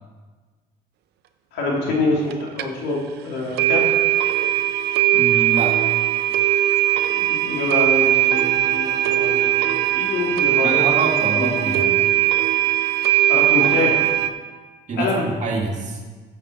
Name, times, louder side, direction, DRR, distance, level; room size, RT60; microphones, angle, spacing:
voice 1, 1.5-3.9 5.3-5.4 7.1-12.1 13.3-14.0 15.0-15.3, left 2 dB, 85° left, -2 dB, 3.1 m, -26 dB
sound 1, 2.3-2.4 2.6-2.7 3.1-3.2 3.6-14.3, right 13 dB, 75° right, 0.7 m, -19 dB
voice 2, 5.1-5.9 10.6-12.0 14.9-16.0, right 3 dB, 45° right, 0 dB, 2.2 m, -26 dB
13.0 x 7.7 x 4.4 m, 1.4 s
cardioid pair, 110°, 17 cm